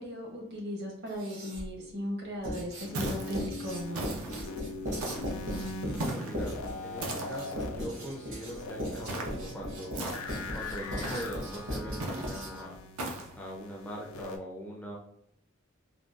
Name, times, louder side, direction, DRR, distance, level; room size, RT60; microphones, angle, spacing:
voice 1, 0.0-4.0, equal, 50° right, 0 dB, 0.8 m, -37 dB
Writing, 1.1-1.8 2.4-12.8, equal, 65° right, 1.4 m, -38 dB
sound 1, 2.8-14.4, left 2 dB, 80° left, 0.4 m, -41 dB
sound 2, 2.9-3.4 3.9-4.4 5.0-5.4 6.0-6.4 7.0-7.5 9.1-9.4 9.9-10.5 11.0-11.4 12.0-12.4 13.0-13.3, right 2 dB, 85° right, 0.6 m, -37 dB
voice 2, 5.8-6.5 6.8-10.1 10.3-12.8 13.4-15.0, equal, 5° left, -3 dB, 0.4 m, -41 dB
3.6 x 2.2 x 2.5 m, 0.69 s
head